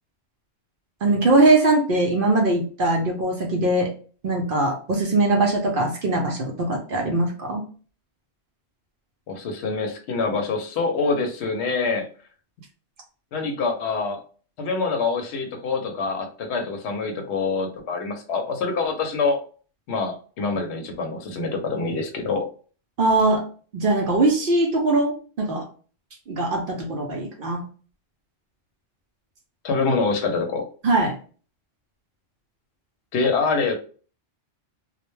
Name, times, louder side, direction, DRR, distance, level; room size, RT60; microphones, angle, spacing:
voice 1, 1.0-3.9 4.2-7.6 23.0-23.4 23.7-25.7 26.3-27.6 30.8-31.1, right 2 dB, 60° right, 1 dB, 0.6 m, -21 dB
voice 2, 9.3-12.1 13.3-14.2 14.6-19.4 19.9-22.4 29.6-30.6 33.1-33.7, left 4 dB, 70° left, 4 dB, 0.8 m, -25 dB
2.3 x 2.1 x 3.0 m, 0.40 s
omnidirectional pair, 1.2 m